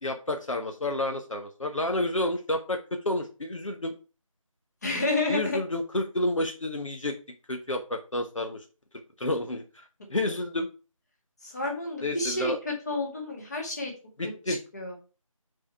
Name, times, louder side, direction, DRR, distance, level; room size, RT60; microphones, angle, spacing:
voice 1, 0.0-2.8 3.0-3.9 5.3-7.1 7.5-8.6 9.2-9.8 10.1-10.7 12.0-12.6 14.2-14.6, left 1 dB, 65° left, 4 dB, 1.2 m, -30 dB
voice 2, 4.8-5.6 11.4-13.9 14.5-15.0, left 2 dB, 30° left, 0 dB, 2.0 m, -30 dB
6.6 x 4.9 x 4.4 m, 0.33 s
figure-of-eight pair, 165°, 18 cm